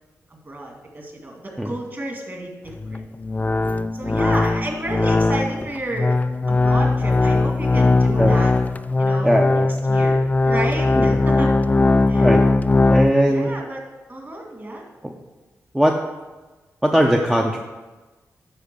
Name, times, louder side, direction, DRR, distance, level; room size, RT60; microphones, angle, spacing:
voice 1, 0.3-3.0 3.9-6.2 6.5-8.5 9.0-9.3 9.9-11.5 12.1-12.3 13.3-13.8 14.1-14.8, right 1 dB, 35° right, 1 dB, 2.3 m, -31 dB
sound 1, 2.7-13.1, left 3 dB, 25° left, 0.3 m, -19 dB
voice 2, 9.2-9.7 11.0-11.2 11.9-12.4 12.9-13.5 15.0-15.1 15.7-16.0 16.8-17.6, equal, 10° right, 1 dB, 0.7 m, -19 dB
10.0 x 4.0 x 6.8 m, 1.2 s
cardioid pair, 75°, 6 cm